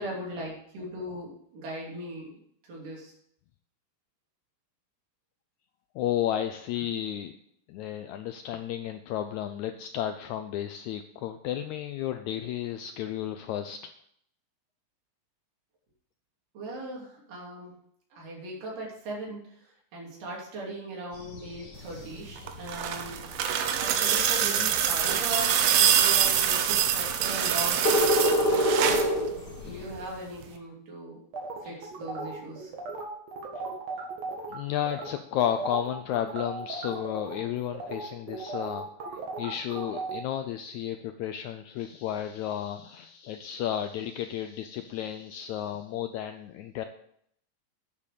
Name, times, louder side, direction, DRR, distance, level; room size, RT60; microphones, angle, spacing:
voice 1, 0.0-3.1 16.5-17.7 18.1-23.4 23.8-28.8 29.2-29.3 29.6-31.2 31.6-32.7 33.4-33.5, right 1 dB, 70° right, -3 dB, 4.6 m, -39 dB
voice 2, 5.9-7.3 7.7-13.8 28.2-28.4 29.5-29.9 31.6-31.8 34.5-38.9 39.4-46.8, left 10 dB, 85° left, 8 dB, 1.7 m, -33 dB
sound 1, 21.1-30.1, equal, 55° left, 1.1 m, -30 dB
sound 2, 22.4-29.1 30.4-30.5, right 9 dB, 90° right, 2.7 m, -25 dB
sound 3, 31.3-34.6 34.9-35.1 35.4-40.2, right 3 dB, 55° right, 2.7 m, -37 dB
9.6 x 7.4 x 6.7 m, 0.69 s
omnidirectional pair, 3.9 m